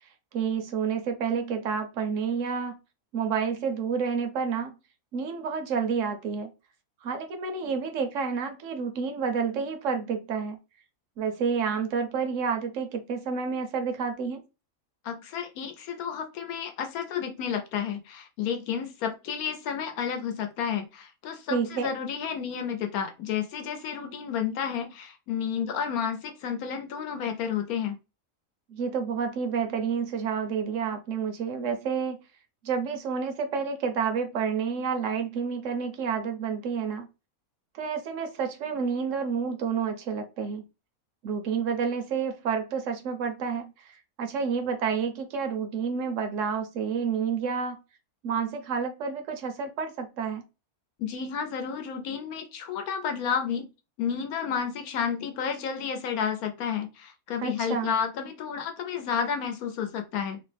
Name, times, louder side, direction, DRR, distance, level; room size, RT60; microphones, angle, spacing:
voice 1, 0.3-2.8 3.1-4.8 5.1-6.5 7.0-10.6 11.2-14.4 21.5-21.9 28.7-32.2 32.6-37.1 37.7-40.6 41.2-47.8 48.2-50.4 57.4-57.9, right 6 dB, 65° right, 0.9 m, -29 dB
voice 2, 15.0-28.0 51.0-53.7 54.0-60.4, left 7 dB, 75° left, 1.0 m, -31 dB
3.0 x 2.0 x 3.2 m
omnidirectional pair, 1.6 m